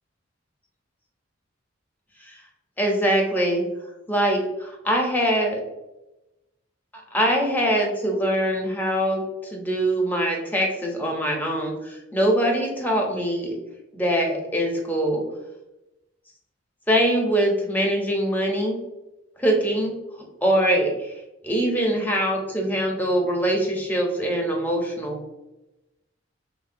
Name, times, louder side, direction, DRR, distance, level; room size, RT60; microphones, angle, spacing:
voice 1, 2.8-3.6 4.1-5.6 7.1-9.2 9.5-13.6 13.9-15.2 16.9-18.8 19.4-20.0 20.4-21.1 21.4-25.2, right 1 dB, 10° left, 1 dB, 0.5 m, -23 dB
3.5 x 2.0 x 2.5 m, 0.96 s
head